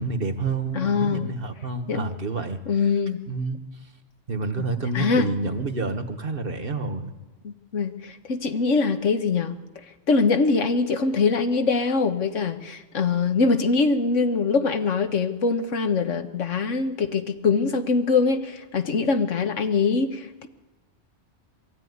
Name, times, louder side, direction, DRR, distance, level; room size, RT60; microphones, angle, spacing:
voice 1, 0.0-2.6 3.3-3.6 4.3-7.1, right 3 dB, 50° right, 8 dB, 1.5 m, -28 dB
voice 2, 0.8-1.3 1.9-2.1 2.7-3.2 4.6-4.7 4.9-5.3 7.4-9.6 10.1-20.5, left 4 dB, 80° left, 8 dB, 1.6 m, -23 dB
22.0 x 14.5 x 9.5 m, 1.2 s
omnidirectional pair, 1.2 m